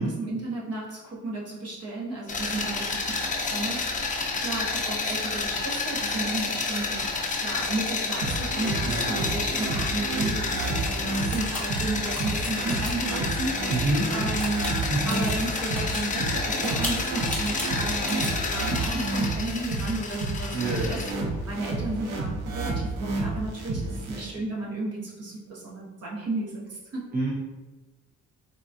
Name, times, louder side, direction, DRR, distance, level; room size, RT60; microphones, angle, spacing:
voice 1, 0.0-14.7 15.1-21.1 21.5-27.0, right 2 dB, 50° right, -4 dB, 1.0 m, -33 dB
sound 1, 2.3-21.1, left 3 dB, 25° left, 0.4 m, -30 dB
sound 2, 8.2-24.2, right 2 dB, 75° right, 0.7 m, -31 dB
sound 3, 8.4-10.9 11.2-16.0 16.5-18.4, left 1 dB, 5° left, 0.8 m, -37 dB
voice 2, 8.8-9.3 13.7-14.1 14.8-15.1 20.5-21.0 23.7-24.2 27.1-27.3, right 2 dB, 30° right, -4 dB, 0.6 m, -28 dB
3.7 x 2.3 x 2.6 m, 1.2 s
cardioid pair, 100°, 32 cm